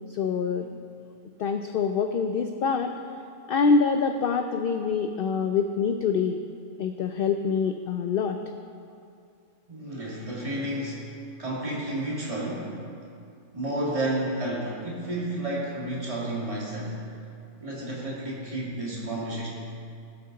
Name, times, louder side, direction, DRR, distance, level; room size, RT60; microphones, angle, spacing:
voice 1, 0.1-0.7 1.4-3.0 3.5-6.4 6.8-8.4, left 5 dB, 65° left, 6 dB, 0.6 m, -25 dB
voice 2, 9.7-11.1 11.4-12.8 13.5-17.0 17.6-19.5, right 1 dB, 25° right, -6 dB, 2.4 m, -31 dB
18.0 x 6.5 x 3.9 m, 2.4 s
omnidirectional pair, 1.4 m